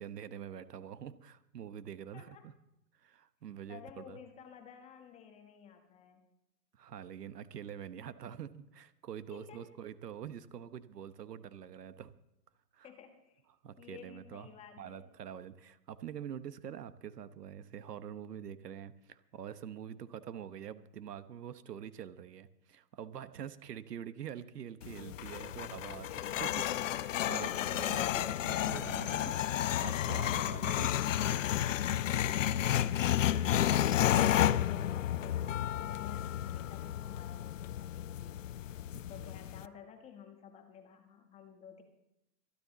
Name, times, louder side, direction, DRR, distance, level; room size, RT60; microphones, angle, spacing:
voice 1, 0.0-2.5 3.0-4.2 6.7-12.1 12.7-12.9 13.6-14.5 14.8-26.1 26.4-26.5 26.9-30.9 31.9-32.0 38.9-39.0, right 9 dB, 70° right, 14 dB, 1.1 m, -45 dB
voice 2, 2.1-2.5 3.7-6.3 9.3-9.7 12.8-13.4 13.8-15.1 26.0-26.4 30.6-31.2 32.0-38.4 39.1-41.8, left 8 dB, 15° left, 6 dB, 1.1 m, -53 dB
sound 1, 24.8-39.7, left 11 dB, 55° left, 0.5 m, -32 dB
25.0 x 10.0 x 4.0 m, 0.86 s
hypercardioid pair, 150°, 49 cm